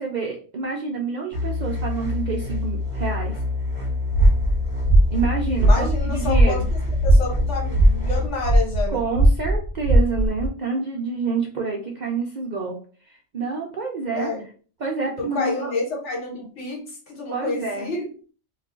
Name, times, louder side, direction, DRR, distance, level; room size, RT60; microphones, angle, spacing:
voice 1, 0.0-3.3 5.1-6.7 8.9-12.7 13.1-14.3 14.8-15.7 17.3-17.9, right 4 dB, 60° right, -1 dB, 0.5 m, -28 dB
sound 1, 1.3-8.3, left 3 dB, 30° right, 1.0 m, -27 dB
sound 2, 4.1-10.5, right 1 dB, 60° left, 1.0 m, -19 dB
voice 2, 5.6-6.6 7.0-9.0 14.1-14.4 15.2-18.0, left 3 dB, 75° left, -1 dB, 1.4 m, -29 dB
2.4 x 2.3 x 3.7 m, 0.40 s
omnidirectional pair, 1.2 m